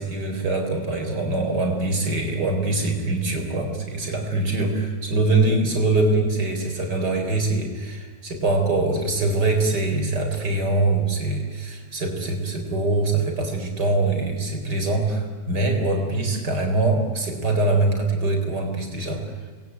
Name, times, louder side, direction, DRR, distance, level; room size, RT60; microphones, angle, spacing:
voice 1, 0.0-19.2, right 2 dB, 80° right, 4 dB, 4.7 m, -23 dB
28.0 x 20.5 x 9.4 m, 1.5 s
omnidirectional pair, 1.8 m